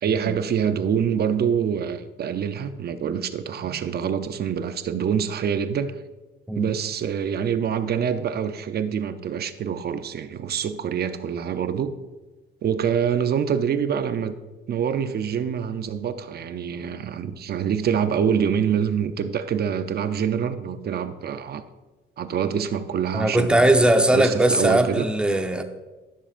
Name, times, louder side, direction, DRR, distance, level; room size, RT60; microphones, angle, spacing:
voice 1, 0.0-6.0 6.5-11.9 12.6-14.3 14.7-21.6 22.2-25.1, right 8 dB, 55° right, 0.6 m, -25 dB
voice 2, 23.1-25.6, right 1 dB, 5° right, 0.8 m, -20 dB
12.5 x 6.9 x 2.5 m
cardioid pair, 90°, 20 cm